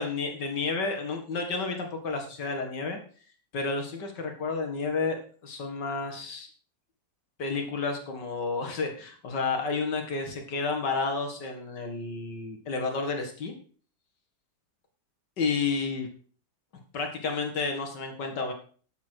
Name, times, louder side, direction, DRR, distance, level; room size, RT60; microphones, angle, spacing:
voice 1, 0.0-3.0 3.5-6.5 7.4-13.5 15.4-16.1 16.9-18.5, left 4 dB, 80° left, 4 dB, 2.4 m, -31 dB
12.5 x 8.2 x 4.6 m, 0.43 s
omnidirectional pair, 1.8 m